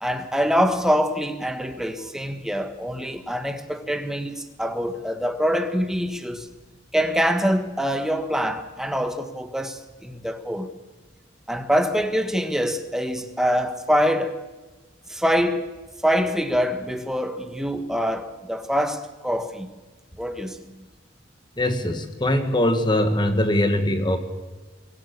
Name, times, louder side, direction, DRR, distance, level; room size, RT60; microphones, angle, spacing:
voice 1, 0.0-6.5 6.9-10.7 11.5-14.4 15.1-15.6 16.0-19.7 20.2-20.6, equal, 5° right, 1.4 m, -24 dB
voice 2, 21.6-24.2, left 1 dB, 25° left, 1.7 m, -22 dB
24.0 x 17.0 x 8.5 m
head